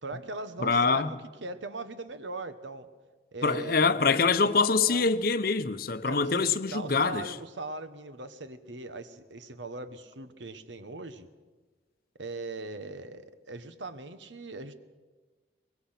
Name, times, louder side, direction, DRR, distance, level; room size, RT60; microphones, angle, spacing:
voice 1, 0.0-2.9 3.3-3.9 4.9-5.1 6.0-11.3 12.2-14.7, right 3 dB, 85° right, 1.3 m, -40 dB
voice 2, 0.6-1.1 3.4-7.3, left 4 dB, 55° left, 0.8 m, -25 dB
23.5 x 21.0 x 5.9 m
head